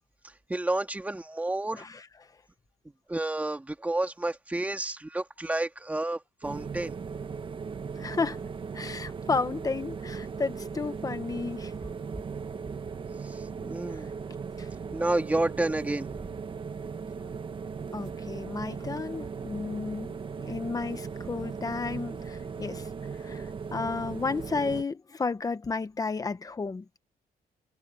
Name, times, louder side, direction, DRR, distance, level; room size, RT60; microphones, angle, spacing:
voice 1, 0.5-1.9 3.1-6.9 13.2-14.1 14.9-16.1, right 2 dB, 10° right, 1.8 m, -30 dB
sound 1, 6.4-24.8, right 5 dB, 30° right, 1.0 m, -38 dB
voice 2, 8.0-8.4 8.7-11.7 13.9-14.0 14.6-14.7 17.9-22.9 23.2-26.8, left 4 dB, 20° left, 1.1 m, -32 dB
wide cardioid pair, 180°, 16 cm